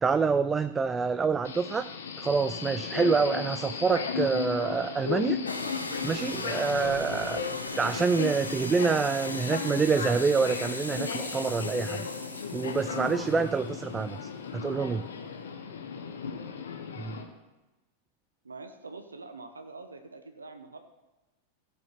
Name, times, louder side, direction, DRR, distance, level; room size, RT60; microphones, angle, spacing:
voice 1, 0.0-1.9 2.2-5.4 6.0-7.4 7.8-12.1 12.5-15.1 17.0-17.2, right 5 dB, 15° right, 12 dB, 0.3 m, -27 dB
Subway metro underground, 1.4-17.2, left 6 dB, 65° left, 1.2 m, -35 dB
sound 1, 5.5-13.8, left 2 dB, 85° left, 1.1 m, -38 dB
voice 2, 18.4-20.8, right 3 dB, 75° right, 7 dB, 0.8 m, -45 dB
14.5 x 6.4 x 4.5 m, 1.1 s
figure-of-eight pair, 90°, 0 cm